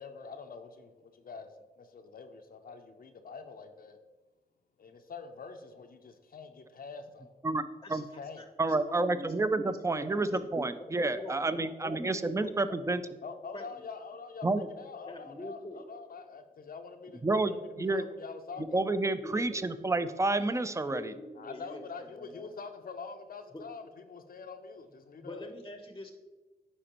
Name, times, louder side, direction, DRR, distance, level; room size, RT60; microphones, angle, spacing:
voice 1, 0.0-4.0 4.8-7.4 8.0-8.5 13.2-18.8 21.4-25.5, left 5 dB, 60° left, 6 dB, 0.6 m, -45 dB
voice 2, 7.8-9.3 9.6-10.6 11.1-13.1 13.5-13.8 15.0-15.8 17.7-17.9 18.6-18.7 19.2-19.7 20.8-22.6 23.5-23.6 25.2-26.1, left 1 dB, 20° left, 5 dB, 0.7 m, -45 dB
voice 3, 8.6-13.0 14.4-14.6 17.2-18.0 18.7-21.1, right 2 dB, 20° right, 12 dB, 0.4 m, -29 dB
10.0 x 4.2 x 3.0 m, 1.2 s
cardioid pair, 50°, 17 cm